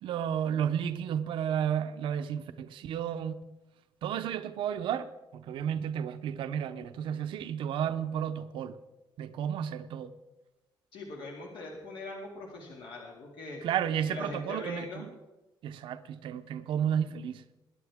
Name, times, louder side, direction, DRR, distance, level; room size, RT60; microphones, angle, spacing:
voice 1, 0.0-3.4 4.0-8.8 9.2-10.1 13.6-15.1 15.6-17.4, right 9 dB, 75° right, 0.7 m, -32 dB
voice 2, 10.9-13.6 14.1-15.1, left 2 dB, 75° left, 2.3 m, -41 dB
21.5 x 10.0 x 3.6 m
cardioid pair, 170°, 9 cm